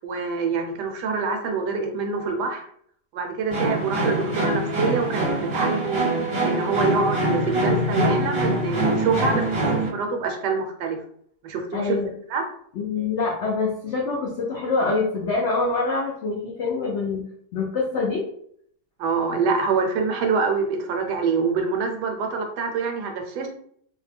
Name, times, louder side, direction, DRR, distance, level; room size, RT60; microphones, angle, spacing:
voice 1, 0.0-2.6 3.1-6.1 6.4-11.0 11.4-12.0 12.3-12.5 19.0-23.5, right 4 dB, 75° right, 3 dB, 1.1 m, -25 dB
sound 1, 3.5-9.9, right 1 dB, 50° right, 0.8 m, -24 dB
voice 2, 11.7-12.1 12.7-17.2 17.5-18.2, left 3 dB, 80° left, -2 dB, 0.6 m, -25 dB
2.8 x 2.1 x 3.2 m, 0.65 s
omnidirectional pair, 1.9 m